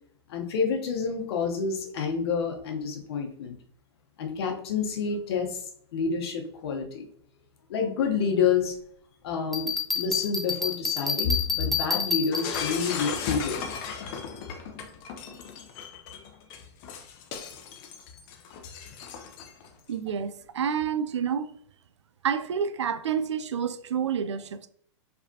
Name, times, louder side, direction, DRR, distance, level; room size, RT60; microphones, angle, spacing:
voice 1, 0.3-3.6 4.2-5.6 5.9-7.1 7.7-8.8 9.2-13.6, left 6 dB, 60° left, 1.1 m, -28 dB
Bell, 9.5-12.9, left 5 dB, ahead, 0.6 m, -29 dB
Shatter, 12.3-19.7, left 6 dB, 45° left, 0.8 m, -36 dB
voice 2, 19.9-21.6 22.2-24.7, right 7 dB, 80° right, 0.4 m, -29 dB
4.9 x 3.4 x 2.8 m
hypercardioid pair, 110°, 15 cm